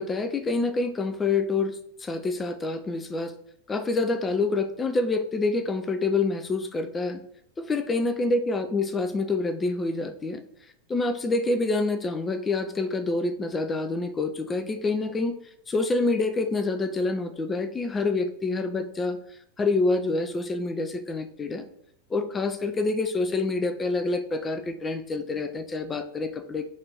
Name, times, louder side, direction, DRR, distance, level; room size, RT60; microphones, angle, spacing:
voice 1, 0.0-3.3 3.7-7.2 7.6-10.4 10.9-15.4 15.7-21.7 22.1-26.6, left 3 dB, 15° left, 9 dB, 0.3 m, -27 dB
4.1 x 2.5 x 4.5 m, 0.72 s
figure-of-eight pair, 90°, 0 cm